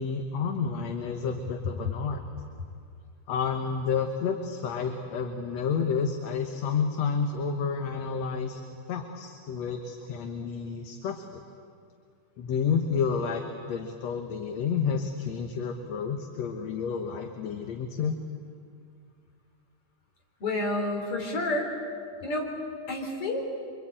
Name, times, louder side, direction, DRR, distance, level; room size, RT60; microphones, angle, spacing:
voice 1, 0.0-2.2 3.3-8.6 8.9-11.4 12.4-13.4 13.7-18.2, left 6 dB, 65° left, 4 dB, 2.3 m, -30 dB
voice 2, 20.4-21.7 22.2-22.5 22.9-23.5, left 2 dB, 45° left, 0 dB, 4.7 m, -29 dB
26.5 x 25.0 x 8.9 m, 2.3 s
omnidirectional pair, 3.6 m